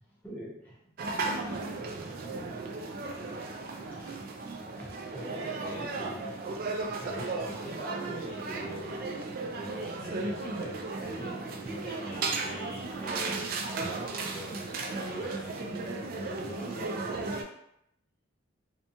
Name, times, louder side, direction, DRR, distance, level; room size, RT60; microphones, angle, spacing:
voice 1, 0.2-0.8 3.7-4.2 4.8-6.4 7.0-8.9 9.5-17.4, equal, 5° left, -8 dB, 0.8 m, -43 dB
sound 1, 1.0-17.4, right 3 dB, 45° right, 0.3 m, -35 dB
2.8 x 2.2 x 2.6 m, 0.77 s
head